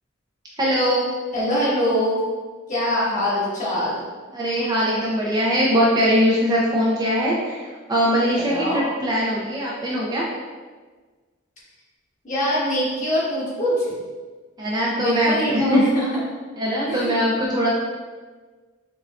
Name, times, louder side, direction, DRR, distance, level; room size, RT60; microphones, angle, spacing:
voice 1, 0.6-1.1 4.3-10.2 14.6-15.8 16.6-17.7, equal, 20° right, -5 dB, 0.4 m, -21 dB
voice 2, 1.3-2.2 2.7-4.0 8.5-8.8 12.2-13.9 15.0-16.2 16.9-17.2, left 1 dB, 40° left, -9 dB, 1.5 m, -23 dB
5.6 x 2.3 x 2.3 m, 1.4 s
head